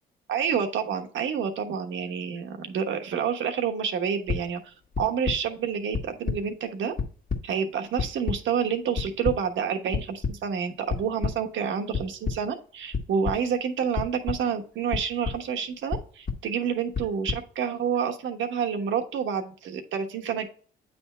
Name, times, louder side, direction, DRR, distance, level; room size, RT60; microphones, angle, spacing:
voice 1, 0.3-6.9 7.4-20.5, right 7 dB, 75° right, 5 dB, 1.2 m, -28 dB
sound 1, 4.3-4.4 4.9-5.4 5.9-6.4 6.7-7.4 8.0-8.4 9.0-9.4 9.9-10.3 10.9-11.3 11.9-12.4 12.9-13.4 14.0-14.4 14.9-15.4 15.9-16.4 16.9-17.4, left 5 dB, 45° left, 1.5 m, -28 dB
8.6 x 3.6 x 4.3 m, 0.43 s
cardioid pair, 90°, 20 cm